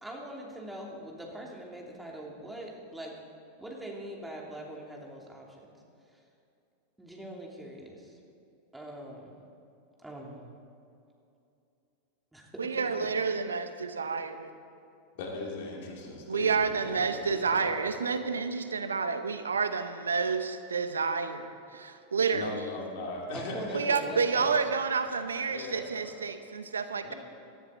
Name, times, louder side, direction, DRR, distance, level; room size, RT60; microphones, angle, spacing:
voice 1, 0.0-3.1 3.6-5.7 6.1-6.2 7.0-8.2 8.7-9.3 10.0-10.4 12.3-12.4 12.8-12.9 23.3-24.6, right 1 dB, 10° right, -1 dB, 3.0 m, -42 dB
voice 2, 12.6-14.5 16.3-22.5 23.7-27.1, right 5 dB, 80° right, 10 dB, 0.8 m, -29 dB
voice 3, 15.2-18.4 22.3-24.7 25.1-25.2 25.5-26.2 27.0-27.2, left 2 dB, 60° left, -1 dB, 3.1 m, -40 dB
18.0 x 13.0 x 4.1 m, 2.6 s
figure-of-eight pair, 90°, 0 cm